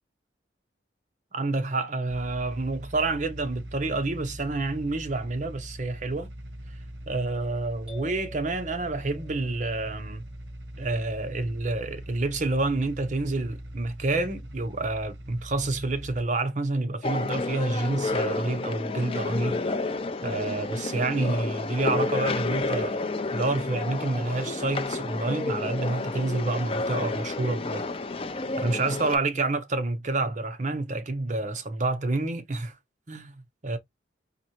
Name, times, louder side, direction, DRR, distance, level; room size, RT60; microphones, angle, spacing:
voice 1, 1.3-6.3 7.1-10.3 10.8-19.6 20.2-22.9 23.3-27.9 28.6-32.7 33.1-33.8, right 2 dB, 40° right, 0.7 m, -28 dB
sound 1, 2.1-16.2, right 1 dB, 65° right, 1.0 m, -41 dB
sound 2, 7.9-9.8, equal, 5° right, 2.8 m, -47 dB
sound 3, 17.0-29.2, left 3 dB, 30° left, 0.5 m, -30 dB
4.1 x 3.1 x 2.9 m
head